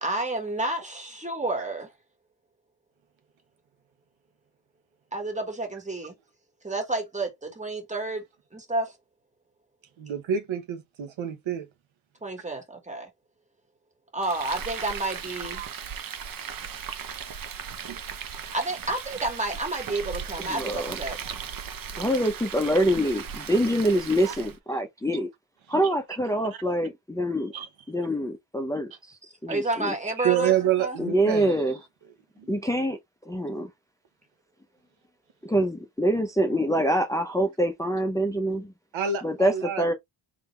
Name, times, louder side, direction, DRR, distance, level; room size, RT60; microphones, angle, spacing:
voice 1, 0.0-1.9 5.1-6.1 6.6-8.2 8.5-8.9 12.2-13.1 14.1-15.6 18.4-21.2 29.2-30.5 30.8-31.0, right 2 dB, 15° right, 1.6 m, -30 dB
voice 2, 10.0-11.7 15.5-15.7 17.9-18.0 24.2-24.3 27.5-27.7 30.2-31.6 32.4-32.5 38.9-39.8, right 9 dB, 85° right, 1.1 m, -27 dB
Frying (food), 14.2-24.6, right 7 dB, 50° right, 0.7 m, -37 dB
voice 3, 20.5-21.0 22.0-25.3 25.7-27.5 27.9-29.9 31.0-31.8 32.5-33.0 33.3-33.7 35.4-38.7 39.2-39.9, equal, 5° left, 0.6 m, -25 dB
3.8 x 3.2 x 3.2 m
wide cardioid pair, 115°, 45 cm